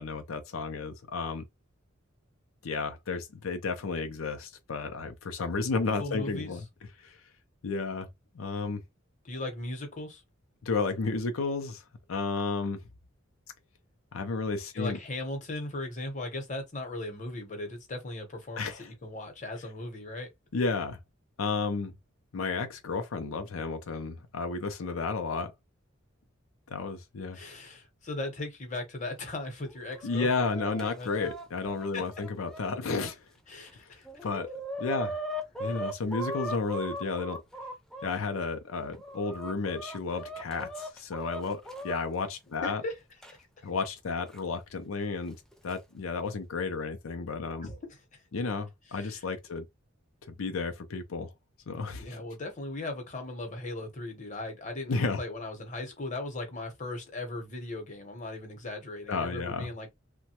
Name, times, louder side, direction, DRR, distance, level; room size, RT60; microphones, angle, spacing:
voice 1, 0.0-1.5 2.6-6.6 7.0-7.2 7.6-8.1 8.3-8.8 10.6-11.8 12.1-12.8 14.1-15.0 18.6-18.9 20.5-21.0 21.4-21.9 22.3-25.5 26.7-27.4 30.0-33.2 33.8-33.9 34.2-34.5 34.8-35.1 35.6-37.4 38.0-42.8 43.6-45.4 45.6-47.7 48.3-49.7 50.4-51.3 51.7-52.2 54.9-55.2 59.1-59.7, left 4 dB, 85° left, 0.5 m, -32 dB
voice 2, 6.0-6.5 9.2-10.2 14.7-20.3 27.3-31.3 31.9-32.0 33.5-34.2 42.6-42.9 43.4-43.5 47.6-47.8 48.1-48.2 48.9-49.2 52.0-59.9, left 2 dB, 35° left, 0.9 m, -38 dB
Chicken rooster, 29.7-33.1 33.7-33.8 34.0-38.1 38.7-42.0 43.2-43.3 44.3-44.4 45.4-45.7, equal, 5° left, 0.4 m, -39 dB
3.0 x 2.2 x 2.9 m
head